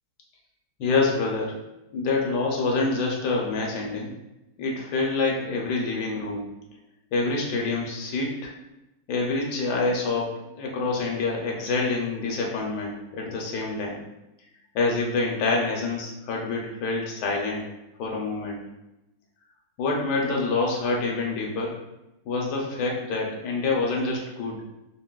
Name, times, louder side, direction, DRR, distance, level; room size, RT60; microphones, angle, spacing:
voice 1, 0.8-1.6 1.9-4.1 4.6-6.5 7.1-8.5 9.1-14.0 14.7-17.7 18.0-18.6 19.8-21.8 22.2-24.6, left 3 dB, 75° left, -1 dB, 1.1 m, -26 dB
3.8 x 2.1 x 2.2 m, 0.94 s
omnidirectional pair, 1.9 m